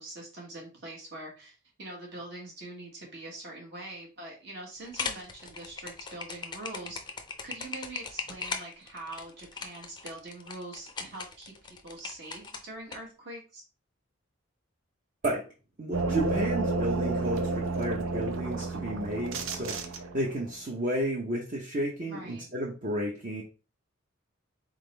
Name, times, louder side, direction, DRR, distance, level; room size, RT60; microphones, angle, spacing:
voice 1, 0.0-7.0 7.4-11.5 11.8-13.6 22.1-22.5, right 2 dB, 55° right, -2 dB, 1.4 m, -43 dB
sound 1, 4.8-13.0, left 5 dB, 20° left, 0.5 m, -38 dB
voice 2, 15.8-23.4, right 1 dB, 40° right, -1 dB, 0.8 m, -32 dB
sound 2, 15.9-20.4, right 3 dB, 75° right, 0.7 m, -31 dB
4.0 x 3.6 x 3.3 m, 0.32 s
head